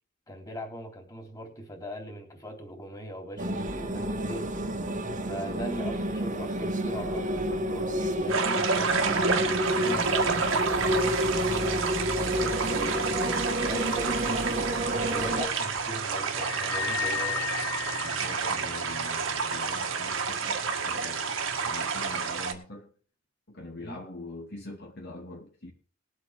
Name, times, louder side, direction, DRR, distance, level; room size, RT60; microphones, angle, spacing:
voice 1, 0.3-4.5 5.3-11.8 12.7-17.4 23.8-24.0, equal, 20° left, 3.5 m, -40 dB
sound 1, 3.4-15.5, equal, 40° right, 1.6 m, -29 dB
sound 2, 8.3-22.5, right 5 dB, 70° right, 1.9 m, -29 dB
sound 3, 16.4-19.0, left 11 dB, 85° left, 1.0 m, -34 dB
voice 2, 18.0-22.9 23.5-25.7, left 2 dB, 55° left, 2.5 m, -44 dB
21.0 x 8.2 x 3.6 m
head